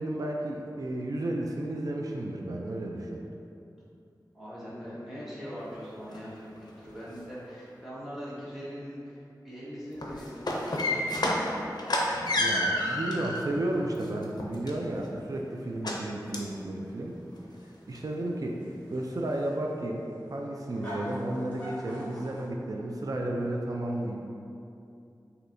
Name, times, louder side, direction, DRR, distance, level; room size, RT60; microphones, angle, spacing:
voice 1, 0.0-3.2 12.4-17.2 17.9-18.6 18.9-24.2, right 1 dB, 55° right, 0 dB, 0.4 m, -33 dB
voice 2, 4.3-11.3, equal, 5° right, -10 dB, 1.5 m, -41 dB
sound 1, 5.6-5.7 6.1-6.2 6.6-7.2 9.9-13.5 13.9-15.1 15.8-16.0 16.3-16.5 16.9-17.0 17.4-17.5 17.9-18.0, left 1 dB, 65° left, 0.5 m, -29 dB
sound 2, 15.5-22.5, left 1 dB, 20° left, 1.4 m, -45 dB
6.1 x 2.8 x 2.6 m, 2.6 s
wide cardioid pair, 70°, 7 cm